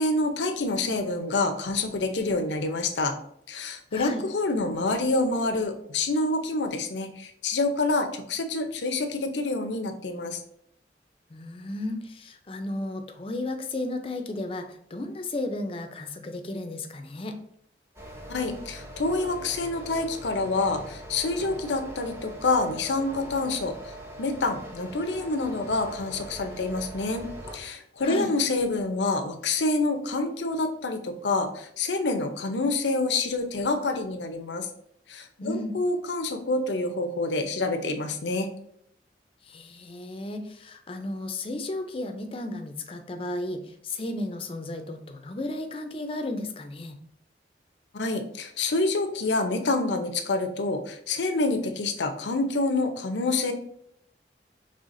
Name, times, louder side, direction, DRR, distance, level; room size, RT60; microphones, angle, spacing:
voice 1, 0.0-3.1 3.5-10.4 18.3-23.7 24.2-27.3 27.5-34.7 35.1-38.5 47.9-53.5, left 2 dB, 85° left, 6 dB, 0.6 m, -27 dB
voice 2, 3.9-4.2 11.3-17.4 28.0-28.3 35.4-35.7 39.4-47.0, left 2 dB, 30° left, 6 dB, 0.5 m, -34 dB
sound 1, 18.0-27.6, right 1 dB, 15° right, 0.7 m, -42 dB
5.5 x 3.3 x 2.5 m, 0.71 s
head